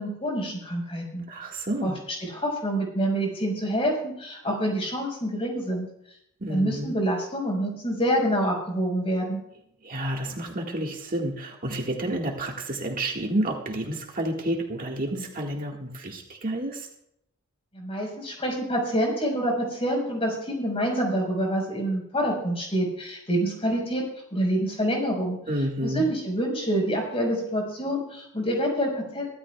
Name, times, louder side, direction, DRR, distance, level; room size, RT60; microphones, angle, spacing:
voice 1, 0.0-1.2 1.8-5.9 6.5-9.4 17.7-24.0 24.3-25.4 25.8-29.3, equal, 25° left, 0 dB, 5.0 m, -27 dB
voice 2, 1.3-2.0 6.4-6.9 9.8-16.9 25.5-26.1, right 1 dB, 40° right, 0 dB, 1.8 m, -30 dB
23.5 x 13.0 x 2.4 m, 0.76 s
head